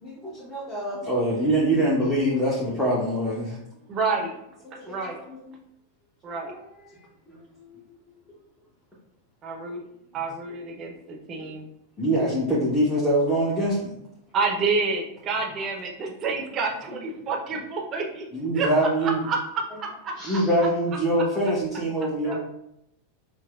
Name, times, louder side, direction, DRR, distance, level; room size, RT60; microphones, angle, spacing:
voice 1, 0.0-3.6 4.6-5.5 12.0-14.0 18.3-19.2 20.2-22.4, right 1 dB, 5° left, -8 dB, 1.0 m, -24 dB
voice 2, 3.9-4.3 4.9-5.2 6.2-6.5 9.4-9.8 10.1-11.7 14.3-20.1, right 4 dB, 30° right, 1 dB, 0.8 m, -29 dB
voice 3, 6.4-7.9 20.2-20.5 22.2-22.4, right 1 dB, 35° left, -6 dB, 1.0 m, -44 dB
5.8 x 2.1 x 2.4 m, 0.79 s
figure-of-eight pair, 90°, 0 cm